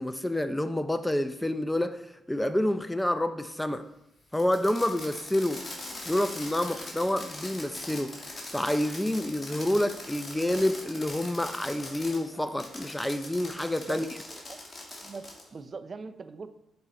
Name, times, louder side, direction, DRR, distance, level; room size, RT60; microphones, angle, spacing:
voice 1, 0.0-2.0 2.3-3.9 4.3-5.6 6.1-14.1, left 1 dB, 10° left, 0.5 m, -28 dB
Fireworks, 4.3-12.2 12.6-15.5, left 2 dB, 30° left, 2.1 m, -41 dB
sound 1, 5.7-13.3, left 4 dB, 65° left, 0.7 m, -53 dB
voice 2, 15.0-16.5, right 4 dB, 45° right, 0.5 m, -40 dB
6.6 x 4.3 x 4.1 m
hypercardioid pair, 45°, 0 cm